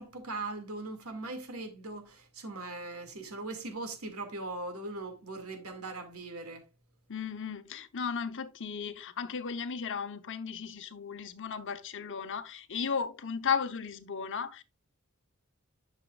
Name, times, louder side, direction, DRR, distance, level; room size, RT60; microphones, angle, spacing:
voice 1, 0.0-6.6, right 2 dB, 70° right, 2.2 m, -40 dB
voice 2, 7.1-14.6, left 6 dB, 60° left, 0.9 m, -35 dB
11.0 x 6.5 x 2.4 m
head